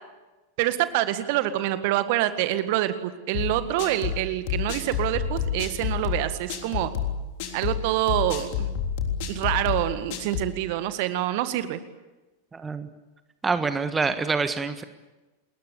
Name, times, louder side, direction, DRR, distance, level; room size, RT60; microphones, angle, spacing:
voice 1, 0.6-6.9 7.5-8.7 9.3-11.8, right 14 dB, 50° right, 11 dB, 1.8 m, -26 dB
sound 1, 3.3-10.5, left 8 dB, 50° left, 3.6 m, -29 dB
voice 2, 12.5-12.9 13.4-14.8, right 4 dB, 15° right, 10 dB, 1.5 m, -26 dB
29.5 x 21.5 x 8.6 m, 1.1 s
figure-of-eight pair, 90°, 0 cm